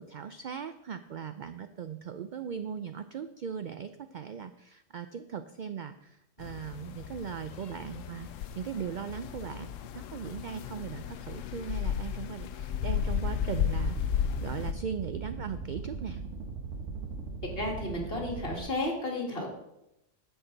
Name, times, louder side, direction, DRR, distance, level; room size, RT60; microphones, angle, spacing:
voice 1, 0.0-14.0 14.4-16.2, right 7 dB, 65° right, 10 dB, 0.4 m, -39 dB
sound 1, 6.4-14.7, left 9 dB, 85° left, 0.9 m, -34 dB
sound 2, 12.8-18.6, right 4 dB, 85° right, 1.6 m, -39 dB
voice 2, 17.6-19.5, left 1 dB, 50° left, 0 dB, 2.2 m, -32 dB
10.5 x 7.9 x 3.9 m, 0.85 s
omnidirectional pair, 1.3 m